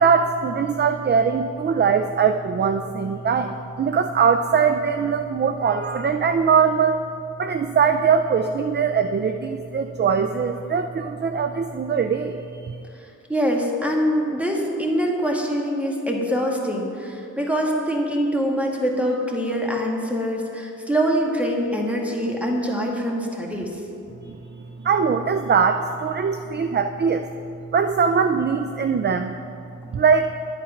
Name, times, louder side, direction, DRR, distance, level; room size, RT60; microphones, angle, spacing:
voice 1, 0.0-7.0 7.4-12.8 24.3-27.3 27.7-29.4 29.9-30.3, right 6 dB, 35° right, 8 dB, 0.5 m, -21 dB
voice 2, 13.3-23.8, equal, 5° right, 0 dB, 2.1 m, -24 dB
10.5 x 8.6 x 5.8 m, 2.6 s
cardioid pair, 70°, 31 cm